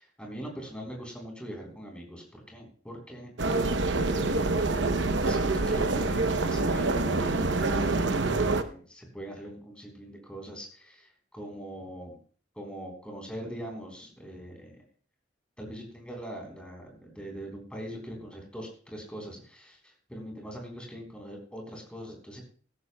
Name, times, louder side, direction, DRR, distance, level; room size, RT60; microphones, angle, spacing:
voice 1, 0.0-4.7 5.3-12.2 12.6-14.8 15.6-22.4, equal, 5° left, 0 dB, 3.9 m, -42 dB
sound 1, 3.4-8.6, right 3 dB, 80° right, 0.9 m, -26 dB
17.0 x 14.0 x 2.3 m, 0.43 s
head